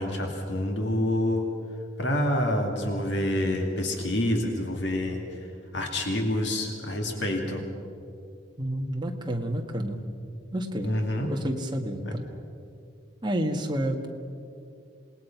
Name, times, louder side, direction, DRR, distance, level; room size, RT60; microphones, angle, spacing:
voice 1, 0.0-1.4 2.0-5.2 5.7-7.6 10.8-11.3 12.0-12.2, left 1 dB, 60° left, 2 dB, 2.5 m, -27 dB
voice 2, 8.6-10.0 10.5-11.0 11.3-12.3 13.2-14.1, right 1 dB, 20° right, 2 dB, 1.8 m, -30 dB
27.5 x 19.5 x 6.0 m, 2.6 s
head